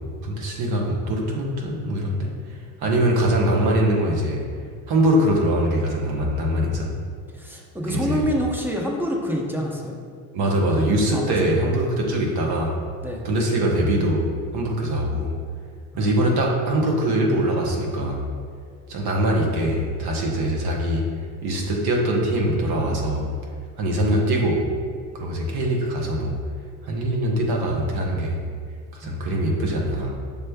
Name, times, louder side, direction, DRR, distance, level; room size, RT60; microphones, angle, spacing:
voice 1, 0.2-4.4 4.9-6.9 7.9-8.2 10.3-12.7 13.2-15.3 16.0-18.2 18.9-21.0 21.4-23.3 23.8-24.6 25.1-26.4 26.8-28.4 28.9-30.1, right 1 dB, 55° right, -1 dB, 0.9 m, -22 dB
voice 2, 7.3-10.0 10.5-11.5 13.0-13.3 15.9-16.4 29.0-29.2, equal, 5° right, -1 dB, 0.6 m, -28 dB
6.6 x 3.1 x 2.3 m, 2.1 s
supercardioid pair, 85°, 46 cm